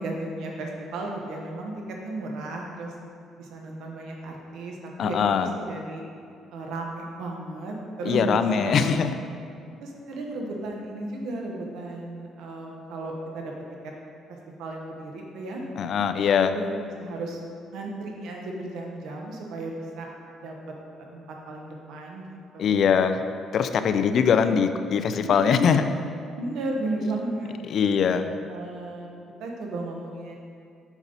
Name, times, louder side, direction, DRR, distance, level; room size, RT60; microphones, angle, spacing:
voice 1, 0.0-1.7 2.0-2.9 3.4-6.0 6.5-9.1 9.8-13.5 13.8-13.9 14.3-15.6 16.5-17.4 17.7-20.1 20.4-20.5 21.0-22.8 25.2-25.7 26.3-27.6 28.2-29.1 29.4-30.4, right 2 dB, 75° right, 0 dB, 1.2 m, -34 dB
voice 2, 5.0-5.5 8.1-9.2 15.8-16.5 22.6-23.2 23.5-25.9 27.7-28.3, left 7 dB, 50° left, 9 dB, 0.4 m, -22 dB
7.2 x 5.4 x 4.0 m, 2.4 s
cardioid pair, 150°, 0 cm